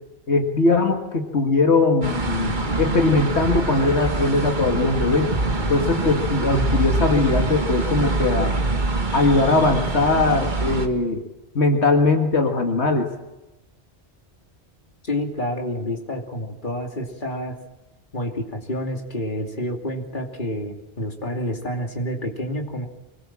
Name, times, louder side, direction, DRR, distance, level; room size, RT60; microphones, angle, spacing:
voice 1, 0.3-5.3 5.7-8.5 9.1-11.2 11.6-13.1, left 3 dB, 85° left, 3 dB, 2.1 m, -20 dB
sound 1, 2.0-10.9, right 2 dB, 45° right, 1.8 m, -24 dB
voice 2, 15.0-17.5 18.1-22.9, equal, 50° left, 2 dB, 3.0 m, -28 dB
25.0 x 21.0 x 7.5 m, 1.0 s
omnidirectional pair, 1.1 m